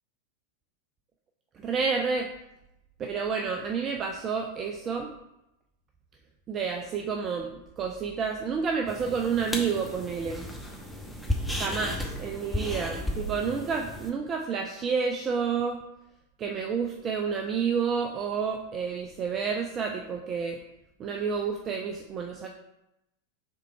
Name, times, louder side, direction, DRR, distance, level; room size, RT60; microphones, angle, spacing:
voice 1, 1.6-2.3 3.0-5.1 6.5-7.5 7.8-10.5 11.5-15.8 16.4-20.6 21.0-22.5, right 5 dB, 30° right, 2 dB, 0.6 m, -29 dB
sound 1, 8.9-14.1, left 1 dB, ahead, 1.0 m, -34 dB
6.7 x 3.7 x 4.5 m, 0.88 s
figure-of-eight pair, 90°, 0 cm